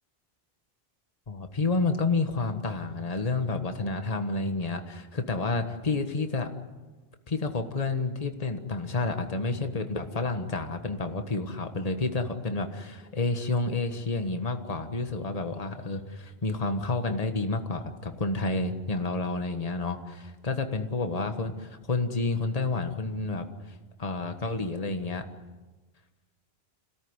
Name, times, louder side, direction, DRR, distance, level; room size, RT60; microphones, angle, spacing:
voice 1, 1.3-6.5 7.3-23.7 24.0-25.2, left 3 dB, 35° left, 6 dB, 1.6 m, -30 dB
27.0 x 17.5 x 9.7 m, 1.2 s
omnidirectional pair, 1.1 m